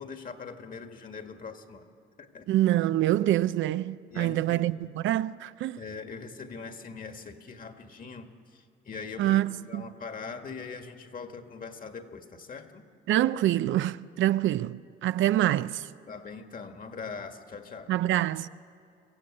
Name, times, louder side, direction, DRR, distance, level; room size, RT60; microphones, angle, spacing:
voice 1, 0.0-1.9 2.2-2.5 4.1-4.6 5.8-9.4 9.7-12.8 16.1-17.9, left 5 dB, 45° left, 1.9 m, -41 dB
voice 2, 2.5-5.8 9.2-9.8 13.1-15.9 17.9-18.5, right 13 dB, 75° right, 0.5 m, -26 dB
25.0 x 15.0 x 8.6 m
cardioid pair, 90°, 20 cm